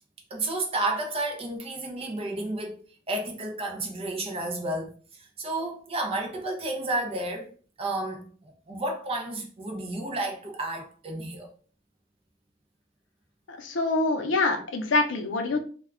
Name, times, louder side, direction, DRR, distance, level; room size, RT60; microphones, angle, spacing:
voice 1, 0.3-2.7 3.1-4.9 5.2-7.5 7.8-11.5, right 2 dB, 30° right, 0.5 m, -31 dB
voice 2, 13.5-15.6, left 2 dB, 75° left, 0.5 m, -25 dB
2.2 x 2.1 x 3.5 m
head